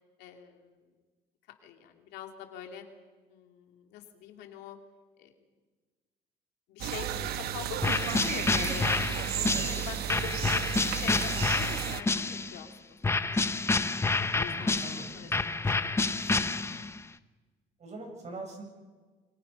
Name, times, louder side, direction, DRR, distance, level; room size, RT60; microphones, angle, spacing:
voice 1, 0.2-0.8 1.6-2.8 3.3-4.8 5.2-5.3 6.7-10.6 10.9-13.8 14.2-16.8, left 8 dB, 90° left, 4 dB, 2.7 m, -44 dB
sound 1, 6.8-12.0, right 11 dB, 70° right, 1.0 m, -33 dB
sound 2, 7.8-12.6 13.0-17.0, left 3 dB, 15° left, 0.8 m, -29 dB
voice 2, 14.5-15.1 17.8-18.6, right 2 dB, 40° right, 2 dB, 7.7 m, -42 dB
27.5 x 24.0 x 5.6 m, 1.4 s
cardioid pair, 110°, 17 cm